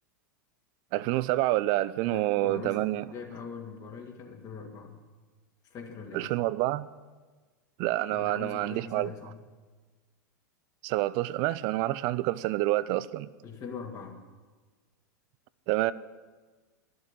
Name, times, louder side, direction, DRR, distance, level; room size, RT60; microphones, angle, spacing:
voice 1, 0.9-3.0 6.1-6.9 7.8-9.1 10.8-13.3 15.7-15.9, right 17 dB, 50° right, 0.5 m, -28 dB
voice 2, 2.0-5.0 5.7-6.3 8.1-9.4 13.4-14.2, left 5 dB, 35° left, 2.3 m, -42 dB
12.0 x 7.6 x 9.9 m
hypercardioid pair, 95°, 10 cm